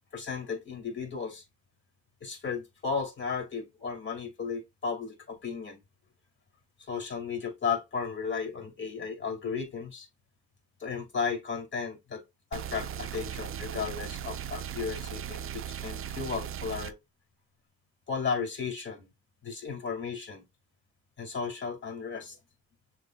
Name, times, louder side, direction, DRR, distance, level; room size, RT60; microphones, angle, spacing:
voice 1, 0.1-1.4 2.2-5.8 6.8-10.1 10.8-12.2 12.5-17.0 18.1-19.1 19.4-20.4 21.2-22.4, left 5 dB, 40° left, 2.0 m, -34 dB
sound 1, 12.5-16.9, right 9 dB, 45° right, 0.5 m, -38 dB
6.8 x 2.6 x 2.3 m
cardioid pair, 90°, 30 cm